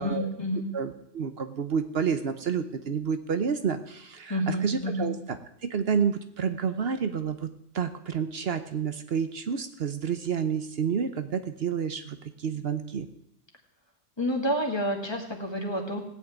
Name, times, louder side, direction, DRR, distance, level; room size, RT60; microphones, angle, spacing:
voice 1, 0.0-0.7 4.3-5.1 14.2-16.0, equal, 25° left, 1 dB, 2.3 m, -29 dB
voice 2, 0.7-7.5 7.7-13.1, right 6 dB, 65° right, 9 dB, 1.1 m, -29 dB
17.0 x 6.4 x 9.2 m, 0.76 s
omnidirectional pair, 1.1 m